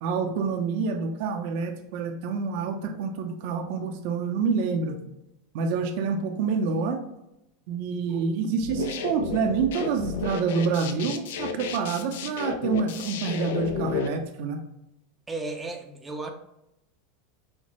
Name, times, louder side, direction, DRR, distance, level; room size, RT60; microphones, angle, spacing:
voice 1, 0.0-5.0 5.5-7.0 7.7-14.6, right 5 dB, 60° right, 5 dB, 0.6 m, -27 dB
sound 1, 8.6-14.1, left 7 dB, 80° left, 0.4 m, -32 dB
voice 2, 15.3-16.3, right 3 dB, 10° right, 2 dB, 0.5 m, -34 dB
5.7 x 2.1 x 3.0 m, 0.84 s
supercardioid pair, 140°, 0 cm